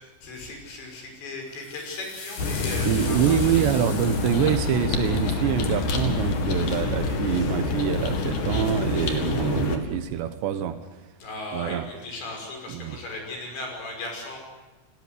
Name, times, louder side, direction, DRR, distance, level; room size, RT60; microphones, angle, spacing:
voice 1, 0.0-3.6 11.2-14.4, left 2 dB, 65° left, 8.1 m, -37 dB
sound 1, 1.5-6.4, left 4 dB, 90° left, 8.3 m, -40 dB
sound 2, 2.4-9.8, left 3 dB, 50° left, 3.2 m, -26 dB
voice 2, 2.8-10.9 11.5-11.9 12.7-13.0, right 10 dB, 75° right, 3.1 m, -25 dB
30.0 x 19.0 x 8.2 m
omnidirectional pair, 5.4 m